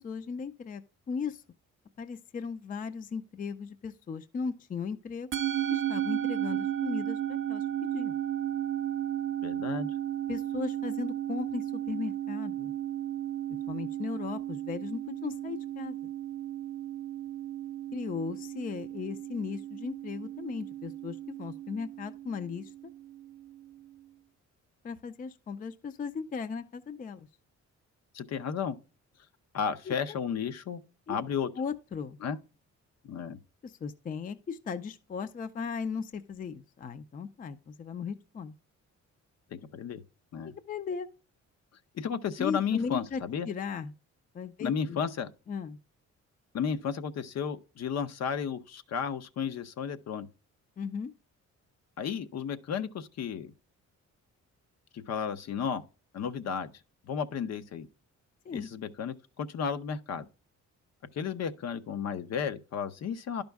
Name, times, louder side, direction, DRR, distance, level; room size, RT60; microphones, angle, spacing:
voice 1, 0.0-1.4 2.0-5.3 5.7-7.7 7.9-8.1 10.3-12.7 13.7-16.0 17.9-22.7 24.8-27.3 29.9-30.2 31.1-31.2 31.6-32.2 33.6-38.5 40.4-41.1 42.4-43.9 44.3-45.0 45.5-45.8 50.8-51.1 58.5-58.7, left 5 dB, 30° left, 0.4 m, -37 dB
Musical instrument, 5.3-23.8, right 12 dB, 45° right, 0.5 m, -34 dB
voice 2, 9.4-9.9 28.1-28.8 29.5-30.8 31.1-31.5 32.2-32.4 33.0-33.4 39.5-40.0 40.3-40.5 41.9-43.5 44.6-45.3 46.5-50.3 52.0-53.5 54.9-55.8 56.1-56.7 57.1-57.9 58.5-60.3 61.1-63.4, left 7 dB, 60° left, 0.7 m, -33 dB
11.5 x 5.2 x 3.4 m
wide cardioid pair, 170°, 29 cm